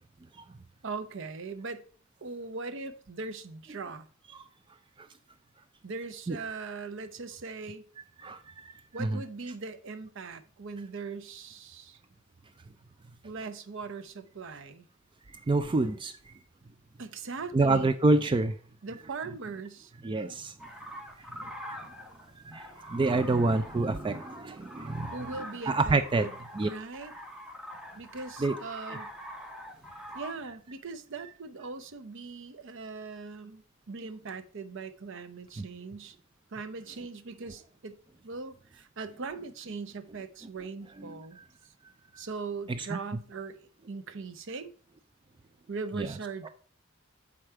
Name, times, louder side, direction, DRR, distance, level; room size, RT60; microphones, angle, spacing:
voice 1, 0.8-1.8 2.2-4.1 5.8-7.8 8.9-12.0 13.2-14.9 17.0-17.9 18.8-19.9 25.1-26.3 26.6-27.1 27.9-29.1 30.1-36.2 36.5-38.0 38.2-41.4 42.2-44.7 45.7-46.5, right 4 dB, 65° right, 0.7 m, -40 dB
voice 2, 8.2-8.7 9.0-9.2 15.5-16.1 17.5-18.5 20.0-20.5 22.5-25.3 25.7-26.3 26.6-26.7 28.4-28.6 35.6-35.7 41.0-41.2 42.7-42.9 46.0-46.1, right 2 dB, 25° right, 0.4 m, -27 dB
sound 1, 20.6-30.3, equal, 5° right, 1.1 m, -44 dB
6.9 x 4.9 x 4.4 m
head